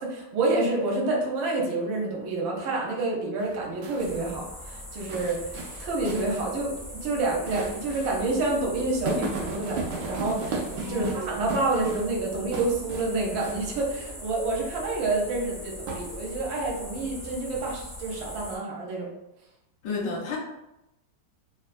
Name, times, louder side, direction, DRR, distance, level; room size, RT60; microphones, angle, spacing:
voice 1, 0.0-10.6 10.9-19.1, right 2 dB, 70° right, -1 dB, 1.3 m, -28 dB
sound 1, 3.4-4.2 5.1-6.4 6.8-6.9 7.5-8.1 8.4-8.5 9.1-12.2 12.5-13.1 13.4-13.8 15.9-16.5, right 3 dB, 90° right, 0.9 m, -35 dB
sound 2, 4.0-18.6, left 1 dB, 25° right, 0.4 m, -41 dB
voice 2, 10.9-11.4 19.8-20.4, left 3 dB, 75° left, -1 dB, 1.0 m, -32 dB
3.4 x 2.2 x 2.4 m, 0.92 s
omnidirectional pair, 2.4 m